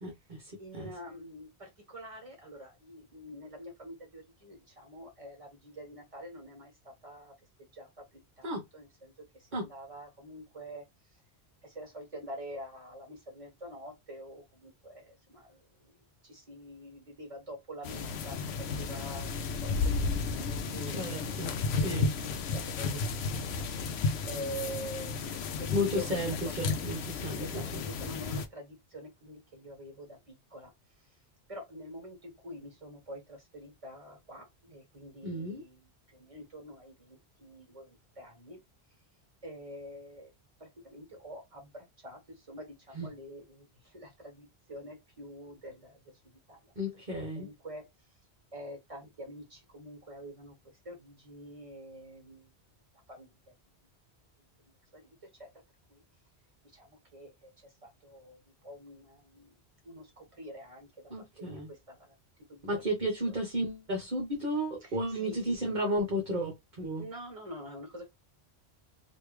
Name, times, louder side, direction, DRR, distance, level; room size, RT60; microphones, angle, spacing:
voice 1, 0.0-0.9 8.4-8.6 9.5-9.6 20.9-22.1 25.7-27.8 35.2-35.6 42.9-43.1 46.8-47.5 61.1-61.7 62.6-67.1, equal, 45° right, 1.1 m, -33 dB
voice 2, 0.6-6.7 7.0-7.3 7.8-7.9 8.4-9.1 9.6-10.8 11.7-15.5 16.3-18.3 18.8-21.2 21.7-22.1 22.5-23.6 24.3-26.1 26.4-26.5 27.4-28.7 28.9-30.2 30.5-30.7 31.5-35.8 36.3-36.9 37.4-37.9 38.2-38.6 39.4-40.3 40.8-42.2 42.5-43.6 43.9-45.9 46.5-46.6 47.2-47.8 48.5-50.5 50.8-52.4 53.1-53.3 54.9-55.0 56.8-56.9 57.1-57.3 58.0-58.4 58.6-59.5 59.8-60.9 61.4-61.6 61.9-62.0 62.5-62.6 63.2-63.4 64.8-65.8 67.0-68.0, equal, 30° right, 1.6 m, -45 dB
sound 1, 17.8-28.5, left 4 dB, 80° left, 0.8 m, -33 dB
3.2 x 2.6 x 3.1 m
omnidirectional pair, 1.1 m